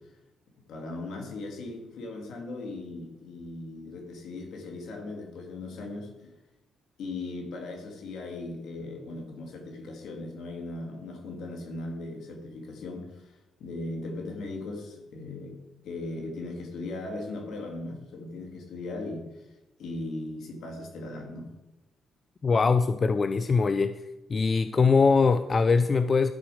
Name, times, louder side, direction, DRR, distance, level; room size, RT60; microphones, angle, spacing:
voice 1, 0.7-6.3 7.0-15.6 15.8-19.4 19.8-21.5, left 2 dB, 75° left, 1 dB, 2.5 m, -38 dB
voice 2, 22.4-24.0 24.3-26.3, left 4 dB, 35° left, 11 dB, 0.4 m, -22 dB
12.0 x 5.1 x 5.0 m, 0.98 s
cardioid pair, 90°, 0 cm